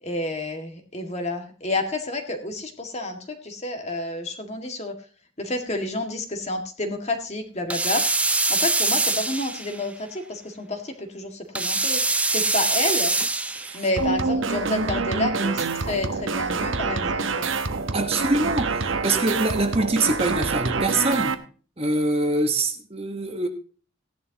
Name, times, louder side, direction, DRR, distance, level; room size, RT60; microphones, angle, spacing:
voice 1, 0.0-4.9 5.4-8.0 8.5-12.0 12.3-13.1 13.7-17.5, left 1 dB, 35° left, 2.0 m, -29 dB
sound 1, 7.7-9.8 11.5-13.8, right 3 dB, 5° right, 0.6 m, -23 dB
sound 2, 14.0-21.3, right 4 dB, 80° right, 1.0 m, -26 dB
voice 2, 17.9-21.4 21.8-23.5, right 2 dB, 30° right, 1.3 m, -24 dB
16.0 x 11.0 x 2.9 m
head